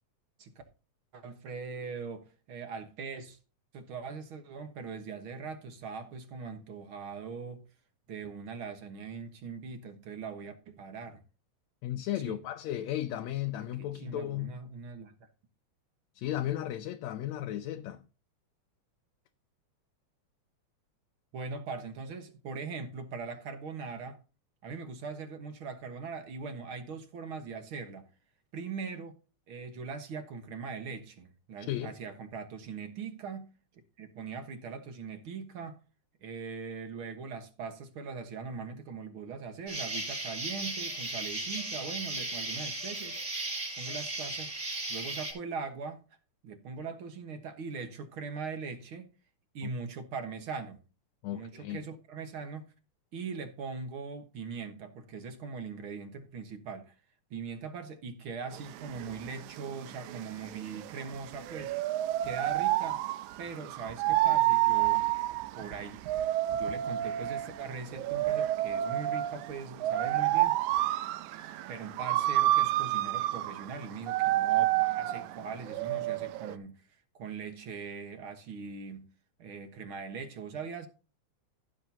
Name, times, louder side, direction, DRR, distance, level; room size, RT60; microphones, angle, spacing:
voice 1, 1.1-3.4 3.7-7.6 8.1-11.2 12.2-12.4 13.8-15.1 21.3-24.2 24.6-28.0 28.5-29.2 29.5-33.5 34.0-35.8 36.2-43.2 43.8-44.5 44.9-46.0 46.4-49.1 49.5-50.8 51.3-52.7 53.1-56.9 57.3-61.7 62.2-63.0 63.4-65.2 65.6-66.1 66.5-70.6 71.4-76.8 77.1-79.1 79.4-80.9, right 5 dB, 55° right, 1.9 m, -41 dB
voice 2, 11.8-14.5 16.2-18.0 31.7-31.9 49.6-49.7 51.2-51.8, left 12 dB, 75° left, 1.9 m, -35 dB
Insect, 39.7-45.3, right 2 dB, 30° right, 4.5 m, -36 dB
sound 1, 58.5-76.6, right 14 dB, 85° right, 2.0 m, -29 dB
15.5 x 7.5 x 2.8 m
omnidirectional pair, 3.4 m